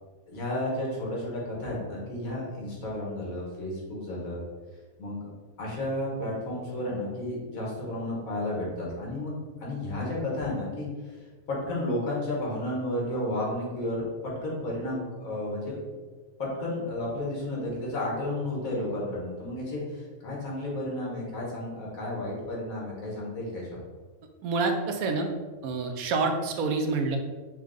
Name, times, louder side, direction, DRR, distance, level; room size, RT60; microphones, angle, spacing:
voice 1, 0.3-4.4 5.0-5.3 5.6-11.2 11.5-15.8 16.4-23.8, left 1 dB, 75° left, -4 dB, 1.6 m, -32 dB
voice 2, 24.4-25.3 25.6-27.2, right 4 dB, 85° right, 4 dB, 1.0 m, -27 dB
4.5 x 2.4 x 3.6 m, 1.4 s
omnidirectional pair, 1.5 m